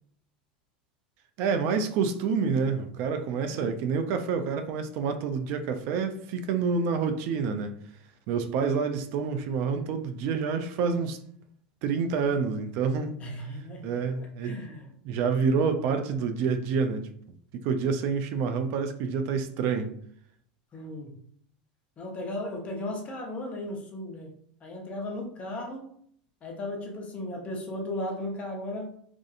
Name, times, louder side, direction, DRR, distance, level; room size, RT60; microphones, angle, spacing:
voice 1, 1.4-7.8 8.3-11.2 11.8-13.2 13.8-14.6 15.0-17.1 17.6-19.9, right 5 dB, 55° right, 0.4 m, -28 dB
voice 2, 3.5-3.8 13.2-14.9 20.7-21.2 22.0-24.3 24.6-25.9 26.4-28.9, left 1 dB, 30° left, 0.8 m, -36 dB
2.6 x 2.5 x 2.4 m
supercardioid pair, 115°, 5 cm